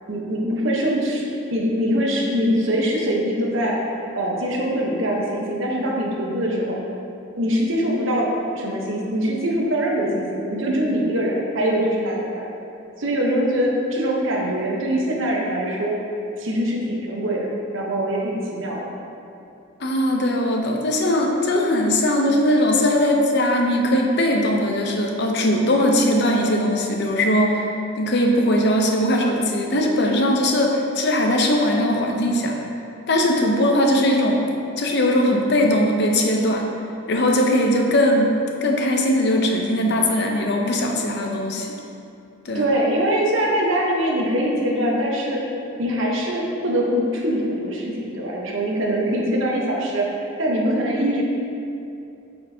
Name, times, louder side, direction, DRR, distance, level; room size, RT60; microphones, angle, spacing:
voice 1, 0.1-6.8 7.4-8.3 8.5-12.4 13.0-15.9 16.4-18.9 42.5-45.4 45.8-51.2, equal, 70° right, -2 dB, 1.0 m, -23 dB
voice 2, 19.8-27.6 28.0-32.6 33.1-34.4 34.8-36.6 37.1-38.3 38.6-41.7 42.4-42.6, left 1 dB, 55° left, 1 dB, 0.7 m, -20 dB
8.3 x 4.5 x 2.8 m, 2.6 s
head